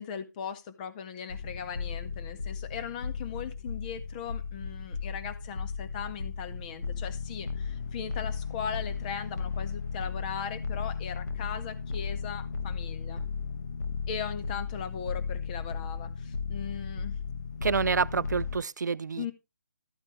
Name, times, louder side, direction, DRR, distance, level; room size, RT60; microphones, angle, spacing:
voice 1, 0.0-13.2 14.1-17.2 19.2-19.3, left 7 dB, 25° left, 1.8 m, -39 dB
sound 1, 1.3-18.6, left 5 dB, 65° left, 1.7 m, -35 dB
voice 2, 17.6-19.3, right 5 dB, 75° right, 0.7 m, -28 dB
14.0 x 8.9 x 3.4 m
hypercardioid pair, 160°, 10 cm